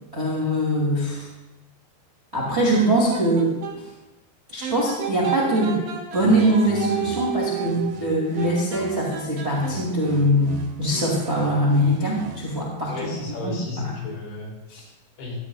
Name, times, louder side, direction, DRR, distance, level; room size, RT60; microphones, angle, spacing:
voice 1, 0.1-1.3 2.3-3.9 4.5-5.8 6.1-12.9 13.4-13.9 14.7-14.8, right 1 dB, 20° right, -5 dB, 1.7 m, -22 dB
sound 1, 2.4-3.8 4.6-10.1, right 7 dB, 60° right, 2.6 m, -32 dB
sound 2, 6.2-9.2 9.6-12.6, right 4 dB, 80° right, 3.2 m, -40 dB
voice 2, 12.9-15.4, left 2 dB, 90° left, -3 dB, 5.2 m, -34 dB
15.5 x 12.0 x 2.3 m, 0.98 s
omnidirectional pair, 5.1 m